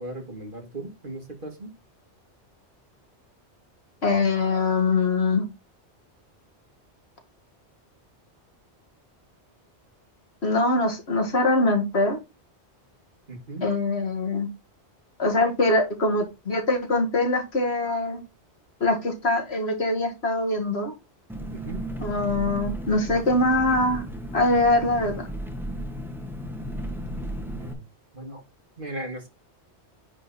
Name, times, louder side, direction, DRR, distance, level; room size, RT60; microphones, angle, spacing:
voice 1, 0.0-1.7 13.3-13.6 21.5-21.8 27.6-27.8 28.1-28.4 28.8-29.3, right 1 dB, 50° right, 3 dB, 2.2 m, -37 dB
voice 2, 4.0-5.5 10.4-12.2 13.6-14.5 15.2-18.2 18.8-20.9 22.0-24.0 24.3-25.3, left 2 dB, 65° left, 3 dB, 2.2 m, -23 dB
Engine, 21.3-27.7, equal, ahead, 1.3 m, -34 dB
9.8 x 3.9 x 4.2 m, 0.24 s
omnidirectional pair, 1.1 m